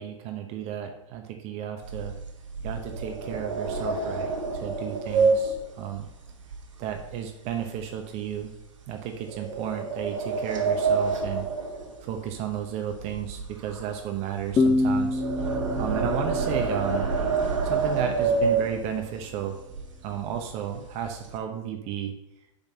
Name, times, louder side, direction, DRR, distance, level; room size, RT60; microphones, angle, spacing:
voice 1, 0.0-2.1 2.6-6.1 6.8-8.5 8.9-11.5 12.0-15.2 15.8-17.1 17.6-19.6 20.0-22.1, right 9 dB, 40° right, 5 dB, 0.9 m, -33 dB
sound 1, 1.8-7.2 7.5-7.8 8.3-8.5 9.3-12.6 12.9-19.1 19.7-19.8 20.1-20.4 20.7-21.4, right 4 dB, 80° right, 1.6 m, -28 dB
sound 2, 14.6-18.0, left 2 dB, 20° left, 0.6 m, -27 dB
5.4 x 5.2 x 6.1 m, 0.91 s
hypercardioid pair, 105°, 16 cm